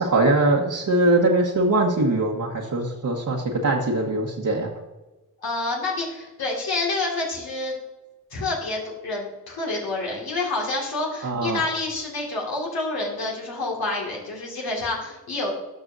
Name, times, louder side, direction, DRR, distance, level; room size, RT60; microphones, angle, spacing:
voice 1, 0.0-4.7 11.2-11.6, right 2 dB, 55° right, -2 dB, 1.3 m, -22 dB
voice 2, 5.4-7.7 8.3-15.5, left 2 dB, 75° left, -3 dB, 2.2 m, -28 dB
12.5 x 5.4 x 2.7 m, 1.1 s
cardioid pair, 60°, 37 cm